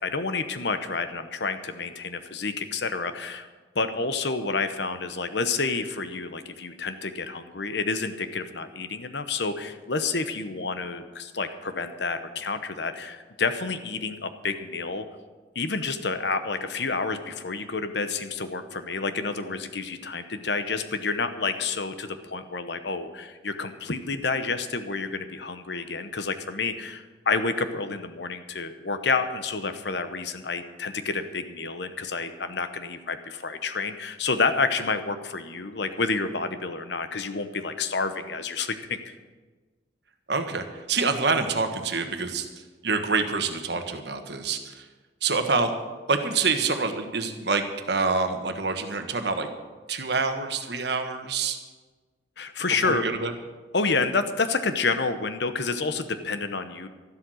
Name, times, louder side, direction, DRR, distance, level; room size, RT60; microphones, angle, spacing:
voice 1, 0.0-3.5 3.7-15.0 15.5-39.1 52.4-53.1 53.7-56.9, left 4 dB, 60° left, 10 dB, 1.0 m, -29 dB
voice 2, 40.3-42.5 42.8-44.8 45.2-45.7 46.1-49.5 49.9-51.6 52.8-53.3, right 4 dB, 60° right, 6 dB, 1.4 m, -26 dB
13.0 x 12.0 x 6.4 m, 1.3 s
head